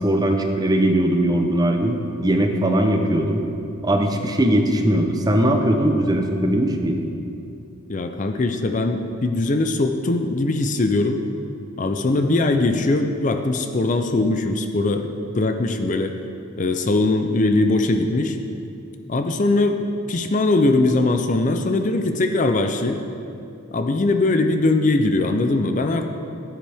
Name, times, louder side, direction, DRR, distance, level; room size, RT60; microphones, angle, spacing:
voice 1, 0.0-3.4 3.8-7.0, right 1 dB, 20° right, 3 dB, 0.7 m, -20 dB
voice 2, 7.9-11.2 11.8-16.1 16.6-18.4 19.1-23.0 23.7-26.1, left 2 dB, 35° left, 6 dB, 0.5 m, -21 dB
14.5 x 8.9 x 3.5 m, 2.7 s
head